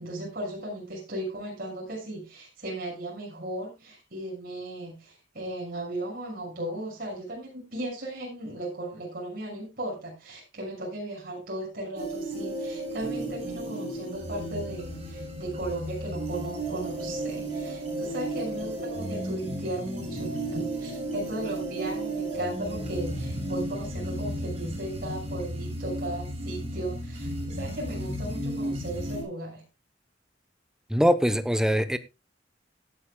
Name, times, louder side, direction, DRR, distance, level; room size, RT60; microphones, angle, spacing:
voice 1, 0.0-29.6, right 1 dB, 50° right, 6.4 m, -36 dB
sound 1, 12.0-29.2, right 1 dB, 35° right, 7.6 m, -34 dB
voice 2, 30.9-32.0, equal, 5° right, 0.9 m, -22 dB
16.5 x 11.5 x 2.3 m
head